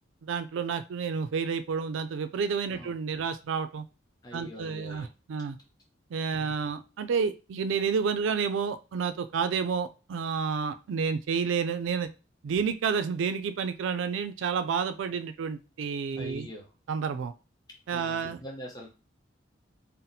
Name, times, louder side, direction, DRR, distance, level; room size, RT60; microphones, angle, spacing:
voice 1, 0.2-3.9 4.3-5.6 6.1-12.1 12.4-16.5 16.9-17.3 17.9-18.4, right 6 dB, 80° right, 11 dB, 0.3 m, -30 dB
voice 2, 4.2-5.1 6.4-6.5 16.2-16.7 17.9-18.9, equal, 20° left, -1 dB, 0.6 m, -43 dB
2.7 x 2.0 x 4.0 m, 0.31 s
head